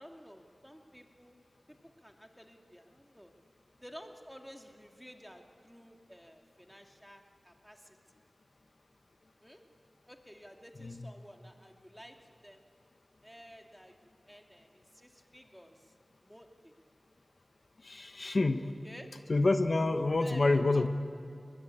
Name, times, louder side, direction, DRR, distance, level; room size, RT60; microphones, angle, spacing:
voice 1, 0.0-1.4 1.7-1.8 2.0-3.3 3.8-8.0 9.4-9.6 10.1-12.2 12.4-12.6 13.2-15.8 16.2-16.7 18.6-19.1 20.2-20.9, equal, ahead, 3 dB, 2.5 m, -53 dB
voice 2, 17.8-18.7 19.3-20.9, left 2 dB, 65° left, 8 dB, 1.0 m, -27 dB
22.0 x 21.0 x 8.6 m, 2.7 s
cardioid pair, 40°, 0 cm